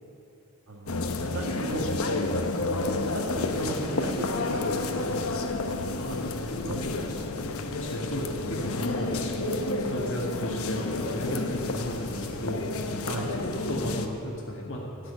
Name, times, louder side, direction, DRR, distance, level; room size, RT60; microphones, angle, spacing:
voice 1, 0.7-2.1 2.6-4.8 5.1-5.2 5.5-5.6 6.1-6.3 6.6-7.1 13.0-13.3, right 1 dB, 75° right, -2 dB, 1.6 m, -36 dB
sound 1, 0.9-14.1, left 2 dB, 80° left, 1.0 m, -30 dB
voice 2, 5.9-7.0 7.4-12.7 13.2-15.1, equal, 55° left, -3 dB, 1.8 m, -34 dB
14.0 x 7.6 x 9.5 m, 2.8 s
head